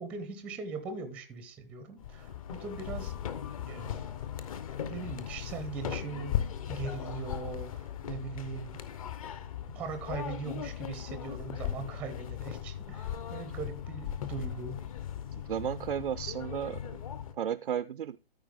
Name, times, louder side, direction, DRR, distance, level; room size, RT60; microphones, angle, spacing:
voice 1, 0.0-3.1 3.6-4.2 4.8-6.4 6.7-8.8 9.7-14.8, right 4 dB, 5° right, 0.5 m, -40 dB
sound 1, 2.0-17.3, left 10 dB, 35° left, 0.7 m, -38 dB
voice 2, 15.3-17.0 17.4-18.2, right 9 dB, 65° right, 0.4 m, -34 dB
13.5 x 4.6 x 3.5 m
figure-of-eight pair, 130°, 30 cm